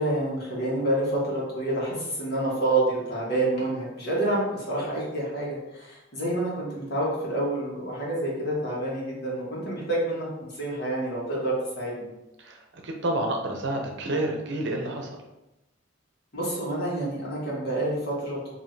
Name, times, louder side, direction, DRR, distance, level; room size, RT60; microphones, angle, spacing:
voice 1, 0.0-12.1 16.3-18.6, right 1 dB, 55° left, -5 dB, 1.4 m, -28 dB
voice 2, 12.4-15.2, right 1 dB, 65° right, 2 dB, 0.7 m, -29 dB
4.7 x 2.8 x 2.7 m, 0.95 s
head